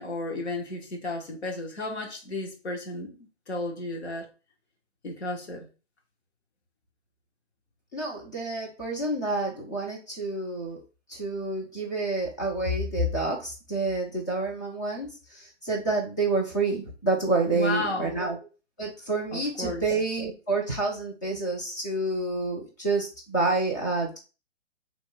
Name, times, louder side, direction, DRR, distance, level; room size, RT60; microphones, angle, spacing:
voice 1, 0.0-3.2 3.5-4.3 5.0-5.7 17.5-18.2 19.3-19.8, left 2 dB, 65° left, 1.3 m, -33 dB
voice 2, 7.9-10.8 11.1-18.4 18.8-24.2, right 2 dB, 15° left, 0.4 m, -28 dB
2.9 x 2.1 x 3.8 m
figure-of-eight pair, 135°, 35 cm